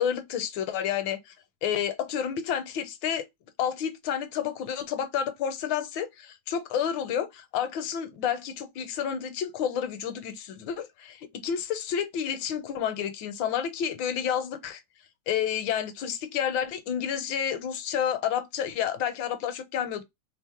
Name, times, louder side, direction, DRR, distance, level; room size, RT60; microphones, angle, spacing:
voice 1, 0.0-1.3 1.6-3.2 3.6-14.8 15.3-20.0, left 8 dB, 80° left, 1.4 m, -30 dB
3.4 x 2.0 x 4.2 m
omnidirectional pair, 2.1 m